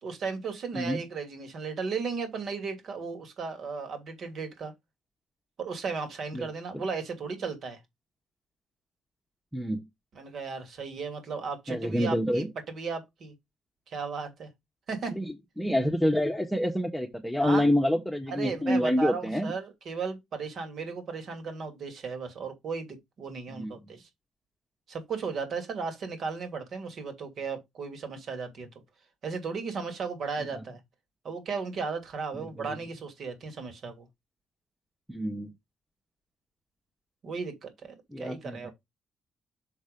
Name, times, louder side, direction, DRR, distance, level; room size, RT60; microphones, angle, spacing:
voice 1, 0.0-4.7 5.6-7.8 10.1-13.3 13.9-14.5 14.9-15.1 17.4-17.7 18.3-24.1 24.9-28.7 29.2-30.8 31.2-34.1 37.2-38.7, right 5 dB, 60° right, 2.7 m, -35 dB
voice 2, 9.5-9.8 11.7-12.5 15.1-19.5 23.5-23.9 30.5-30.6 32.3-32.8 35.1-35.5 38.1-38.7, left 1 dB, ahead, 1.2 m, -28 dB
6.7 x 4.3 x 5.3 m
cardioid pair, 90°, 0 cm